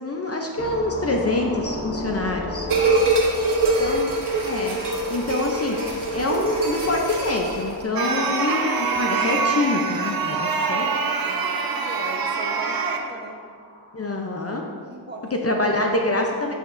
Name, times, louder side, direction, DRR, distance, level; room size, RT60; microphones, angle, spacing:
voice 1, 0.0-2.7 3.8-4.1 4.5-4.8 5.1-5.8 6.1-10.9 13.9-14.6 15.3-16.5, left 2 dB, 35° left, 1 dB, 0.6 m, -25 dB
sound 1, 0.6-14.4, left 1 dB, 90° left, 1.3 m, -38 dB
voice 2, 2.6-4.0 10.5-13.4 14.9-15.3, right 1 dB, 25° right, -1 dB, 1.1 m, -37 dB
sound 2, 2.7-7.8, right 2 dB, 85° right, 1.3 m, -24 dB
sound 3, 8.0-13.0, right 5 dB, 60° right, 0.7 m, -25 dB
11.0 x 5.1 x 2.6 m, 2.1 s
wide cardioid pair, 90°, 40 cm